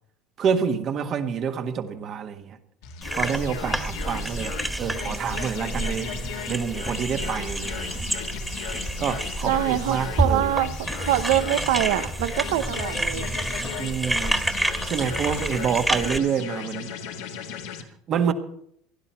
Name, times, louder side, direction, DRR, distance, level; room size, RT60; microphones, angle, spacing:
voice 1, 0.4-2.6 3.2-8.0 9.0-10.5 13.8-14.5 14.9-16.9 18.1-18.3, right 7 dB, 50° right, 1.7 m, -28 dB
sound 1, 2.8-17.8, left 7 dB, 80° left, 2.0 m, -36 dB
sound 2, 3.0-16.2, right 1 dB, 5° right, 1.7 m, -29 dB
voice 2, 9.4-13.3, right 13 dB, 80° right, 0.9 m, -24 dB
16.0 x 11.5 x 5.8 m
supercardioid pair, 90°, 0 cm